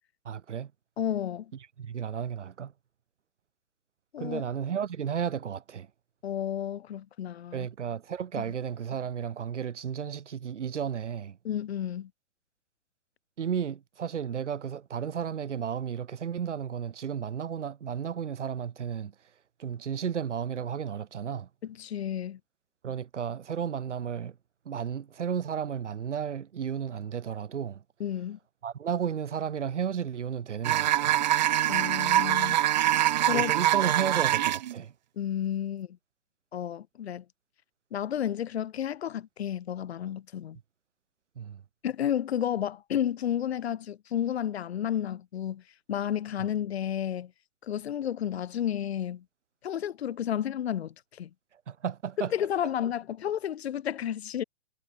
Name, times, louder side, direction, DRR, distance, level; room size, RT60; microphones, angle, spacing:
voice 1, 0.2-0.7 1.8-2.7 4.2-5.9 7.5-11.4 13.4-19.1 19.6-21.5 22.8-24.4 24.6-27.8 28.6-31.2 33.3-34.9 41.3-41.6 46.4-46.5 51.5-52.3, right 8 dB, 75° right, 6.8 m, -33 dB
voice 2, 1.0-1.5 4.1-4.4 6.2-7.7 8.4-8.5 11.4-12.1 21.6-22.4 28.0-28.4 31.7-32.6 33.3-33.5 35.2-36.0 36.5-37.2 37.9-40.6 41.8-45.6 45.9-47.3 47.6-49.2 49.6-51.3 52.3-54.4, left 10 dB, 60° left, 3.1 m, -31 dB
sound 1, 30.6-34.7, right 13 dB, 40° right, 0.7 m, -24 dB
hypercardioid pair, 160°, 36 cm